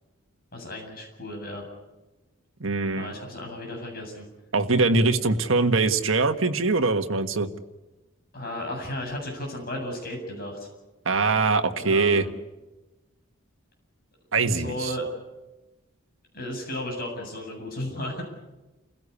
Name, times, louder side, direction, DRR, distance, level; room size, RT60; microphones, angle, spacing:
voice 1, 0.5-1.6 3.0-4.2 8.3-10.7 11.8-12.3 14.5-15.0 16.3-18.2, left 1 dB, 45° left, 2 dB, 8.0 m, -34 dB
voice 2, 2.6-3.1 4.5-7.5 11.0-12.2 14.3-14.9, right 3 dB, 70° right, 7 dB, 1.6 m, -22 dB
29.5 x 16.5 x 8.4 m, 1.1 s
head